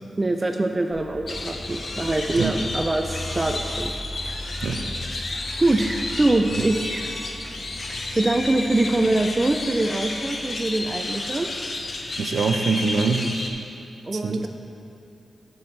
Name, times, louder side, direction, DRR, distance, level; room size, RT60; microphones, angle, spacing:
voice 1, 0.2-4.0 4.2-4.3 5.6-7.2 7.9-11.5 14.0-14.5, right 2 dB, 20° right, 4 dB, 0.3 m, -24 dB
sound 1, 0.9-12.8, left 1 dB, 25° left, 1.0 m, -39 dB
sound 2, 1.3-13.5, left 2 dB, 40° left, 0.6 m, -32 dB
voice 2, 4.6-4.9 12.2-13.4 14.2-14.5, right 4 dB, 80° right, 6 dB, 0.5 m, -24 dB
12.0 x 5.7 x 3.3 m, 2.7 s
wide cardioid pair, 165°, 0 cm